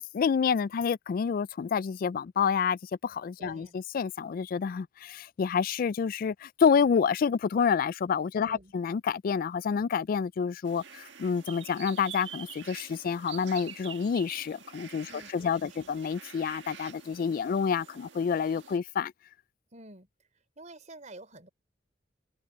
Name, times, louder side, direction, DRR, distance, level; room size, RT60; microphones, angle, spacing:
voice 1, 0.0-19.1, left 6 dB, 50° left, 0.3 m, -28 dB
voice 2, 3.4-3.8 8.4-8.7 15.1-15.8 19.7-20.1 20.6-21.5, right 2 dB, 40° right, 5.0 m, -49 dB
sound 1, 10.6-18.8, right 9 dB, 85° right, 1.6 m, -47 dB
head